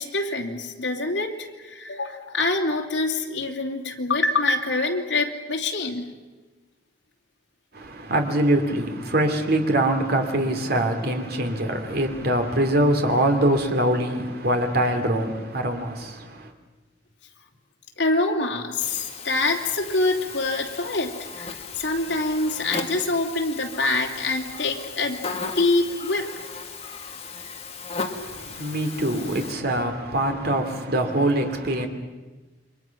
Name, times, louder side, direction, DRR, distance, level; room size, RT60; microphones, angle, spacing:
voice 1, 0.0-6.1 18.0-25.2 25.5-26.4, left 2 dB, 70° left, 3.0 m, -25 dB
voice 2, 7.7-16.5 28.1-31.9, right 1 dB, 55° right, 2.8 m, -23 dB
Buzz, 18.8-29.5, left 4 dB, 35° left, 2.0 m, -36 dB
29.0 x 24.0 x 6.0 m
head